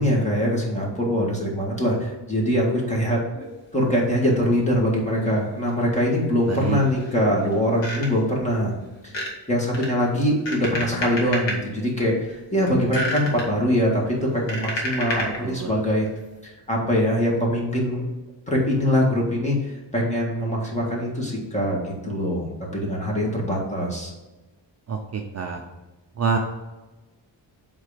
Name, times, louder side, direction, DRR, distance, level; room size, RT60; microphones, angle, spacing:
voice 1, 0.0-3.5 3.7-8.7 9.0-9.2 9.5-16.1 16.4-18.0 18.5-24.1, equal, 15° left, -3 dB, 1.8 m, -23 dB
sound 1, 5.3-5.4 5.7-5.8 6.5-7.2 7.5-8.3 9.0-9.3 9.7-11.6 12.1-12.3 12.7-13.4 14.1-15.5 16.0-16.2, left 1 dB, 80° left, 1.9 m, -30 dB
voice 2, 6.5-6.8 15.4-15.7 24.9-25.6 26.2-26.4, right 6 dB, 35° right, 2 dB, 0.6 m, -26 dB
7.9 x 3.8 x 5.1 m, 1.1 s
wide cardioid pair, 175°, 43 cm